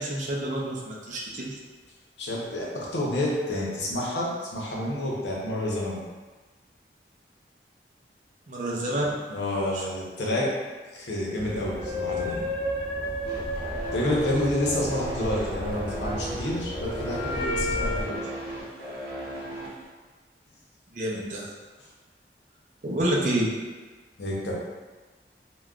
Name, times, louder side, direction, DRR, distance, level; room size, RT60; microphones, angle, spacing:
voice 1, 0.0-1.6 8.5-9.0 20.9-21.5 22.8-23.5, right 1 dB, 45° right, -4 dB, 0.4 m, -28 dB
voice 2, 2.2-6.0 8.7-8.8 9.3-10.5 10.9-12.5 13.9-18.2 24.2-24.5, left 1 dB, 85° left, -4 dB, 0.7 m, -29 dB
sound 1, 11.4-18.0, left 1 dB, 25° left, 0.4 m, -32 dB
sound 2, 13.3-19.9, right 1 dB, 65° right, 0.8 m, -37 dB
3.5 x 2.2 x 2.3 m, 1.3 s
head